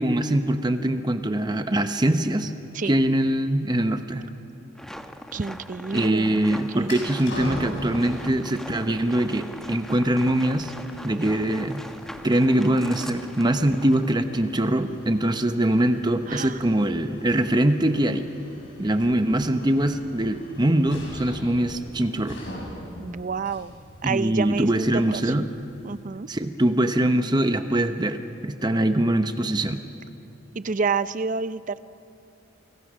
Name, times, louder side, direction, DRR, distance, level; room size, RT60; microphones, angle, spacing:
voice 1, 0.0-2.5 2.9-4.3 5.9-10.7 11.0-11.8 12.2-18.3 18.8-22.4 24.0-25.5 26.3-29.8, right 1 dB, 20° right, 8 dB, 0.8 m, -23 dB
sound 1, 4.7-14.4, equal, ahead, 0.9 m, -40 dB
voice 2, 5.3-7.0 16.3-16.6 23.0-23.7 24.0-25.3 25.8-26.3 30.5-31.8, right 4 dB, 40° right, 15 dB, 0.5 m, -29 dB
sound 2, 6.2-26.0, left 1 dB, 65° left, 7.1 m, -42 dB
29.5 x 25.0 x 6.3 m, 2.8 s
head